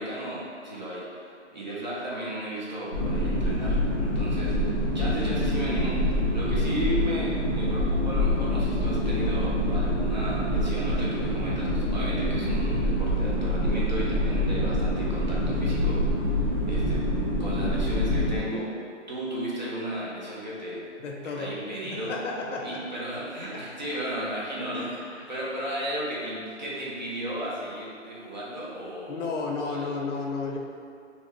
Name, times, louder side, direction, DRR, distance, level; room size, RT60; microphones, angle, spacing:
voice 1, 0.0-16.1 16.6-17.1 17.4-18.7 19.1-20.9 21.2-22.2 22.6-29.3 29.6-30.0, right 1 dB, 40° right, -6 dB, 0.5 m, -34 dB
sound 1, 2.9-18.4, equal, 20° left, 0.5 m, -26 dB
voice 2, 21.0-21.6 21.8-22.8 23.5-23.6 24.0-24.1 24.7-25.0 29.0-30.6, left 3 dB, 75° left, 1 dB, 0.5 m, -33 dB
2.7 x 2.0 x 3.1 m, 2.3 s
hypercardioid pair, 170°, 37 cm